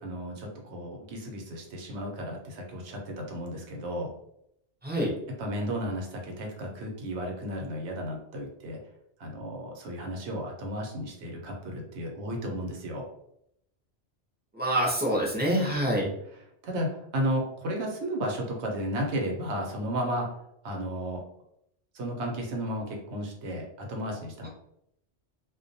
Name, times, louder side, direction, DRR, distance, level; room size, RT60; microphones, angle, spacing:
voice 1, 0.0-4.1 5.4-8.8 9.2-13.0 15.9-20.3 20.6-21.2 21.9-24.5, equal, 90° right, 0 dB, 1.0 m, -33 dB
voice 2, 4.8-5.1 14.5-16.1, right 1 dB, 15° right, -3 dB, 0.4 m, -26 dB
2.2 x 2.2 x 2.6 m, 0.75 s
omnidirectional pair, 1.1 m